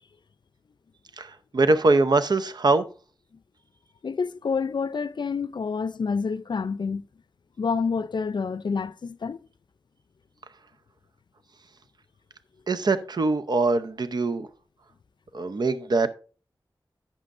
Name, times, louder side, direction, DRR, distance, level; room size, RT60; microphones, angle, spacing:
voice 1, 1.2-2.8 12.7-14.5 15.3-16.1, right 3 dB, 60° right, 0.7 m, -23 dB
voice 2, 4.0-7.0 7.6-9.4, left 5 dB, 70° left, 0.5 m, -28 dB
11.5 x 8.7 x 2.5 m
wide cardioid pair, 85°, 8 cm